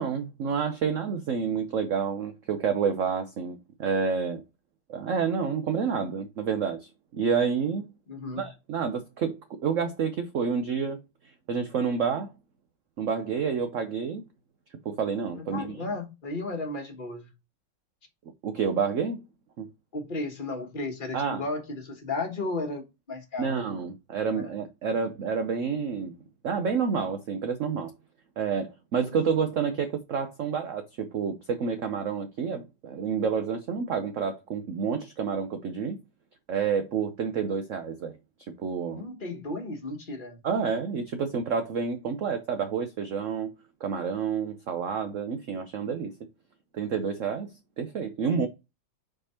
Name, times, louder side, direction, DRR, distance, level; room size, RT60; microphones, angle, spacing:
voice 1, 0.0-4.4 4.9-7.9 8.4-11.0 11.5-12.3 13.0-14.2 14.8-15.7 18.4-19.2 19.6-19.7 21.1-21.4 23.4-26.2 26.4-27.9 28.4-36.0 36.5-38.1 38.6-39.0 40.4-43.5 43.8-46.1 46.7-47.5 47.8-48.5, right 6 dB, 65° right, 0.8 m, -29 dB
voice 2, 8.1-8.5 15.3-17.3 19.9-23.5 24.3-24.5 38.9-40.4, left 2 dB, 30° left, 1.3 m, -34 dB
5.0 x 4.6 x 4.2 m
omnidirectional pair, 2.1 m